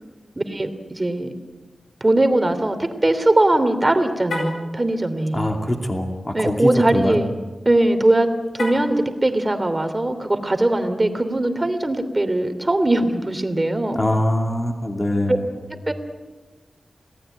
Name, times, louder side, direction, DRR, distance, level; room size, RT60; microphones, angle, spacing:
voice 1, 0.4-1.3 2.0-5.5 6.3-7.3 7.6-8.3 8.5-14.0 15.3-15.4 15.9-16.0, right 1 dB, 25° right, 8 dB, 3.0 m, -20 dB
Car, 4.2-4.7 8.5-9.0, left 2 dB, 75° left, 7.8 m, -28 dB
voice 2, 5.3-7.2 13.9-15.6, left 1 dB, 25° left, 3 dB, 2.7 m, -23 dB
27.5 x 18.5 x 9.1 m, 1.3 s
wide cardioid pair, 90°, 0 cm